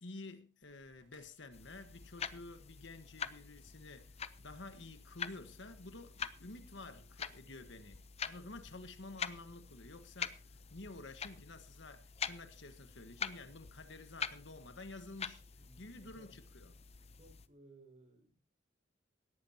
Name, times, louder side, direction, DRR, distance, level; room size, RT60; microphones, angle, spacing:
voice 1, 0.0-15.5 15.8-16.7, left 2 dB, 90° left, 1.5 m, -51 dB
sound 1, 0.6-9.2, right 2 dB, 70° right, 4.8 m, -74 dB
sound 2, 1.5-17.5, left 6 dB, 35° left, 0.7 m, -46 dB
voice 2, 15.6-16.4 17.1-18.4, right 2 dB, 40° right, 5.4 m, -61 dB
18.0 x 14.5 x 2.9 m
head